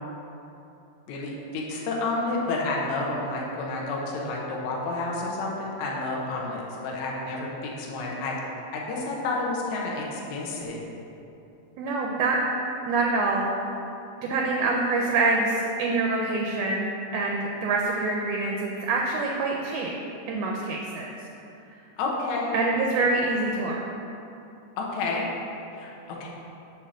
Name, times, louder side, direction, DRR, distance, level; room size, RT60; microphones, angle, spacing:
voice 1, 1.1-8.4 8.7-10.8 22.0-22.5 23.0-23.1 24.8-25.3 25.7-26.3, left 3 dB, 70° left, -3 dB, 2.0 m, -30 dB
voice 2, 11.8-12.4 12.9-13.4 14.2-19.9 20.3-21.1 22.5-23.8, right 3 dB, 80° right, -1 dB, 1.5 m, -25 dB
8.3 x 2.8 x 6.2 m, 2.8 s
omnidirectional pair, 3.6 m